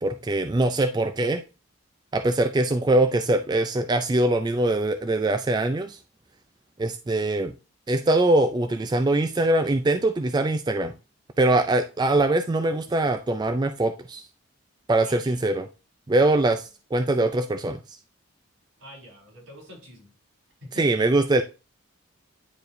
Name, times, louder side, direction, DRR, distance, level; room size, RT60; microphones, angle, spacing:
voice 1, 0.0-1.4 2.1-6.0 6.8-7.5 7.9-10.9 11.4-14.2 14.9-15.7 16.1-17.8 20.8-21.4, right 2 dB, 20° right, 0.3 m, -22 dB
voice 2, 15.0-15.4 18.8-20.1 20.6-20.9, left 1 dB, 85° right, 4.4 m, -45 dB
9.7 x 4.6 x 2.6 m
head